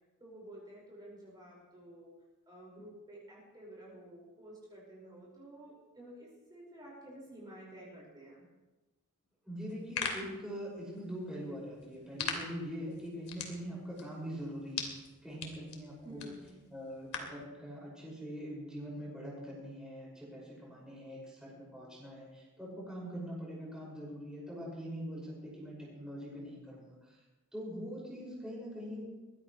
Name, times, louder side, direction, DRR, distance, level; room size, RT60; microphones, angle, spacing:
voice 1, 0.2-2.1 2.5-8.5 16.0-16.6, right 1 dB, 20° right, -6 dB, 5.6 m, -51 dB
voice 2, 9.5-14.9 15.2-16.3 16.7-27.0 27.5-29.1, equal, 5° right, -6 dB, 6.2 m, -43 dB
sound 1, 9.6-17.4, left 5 dB, 90° left, 2.8 m, -43 dB
22.0 x 16.0 x 3.3 m, 1.1 s
head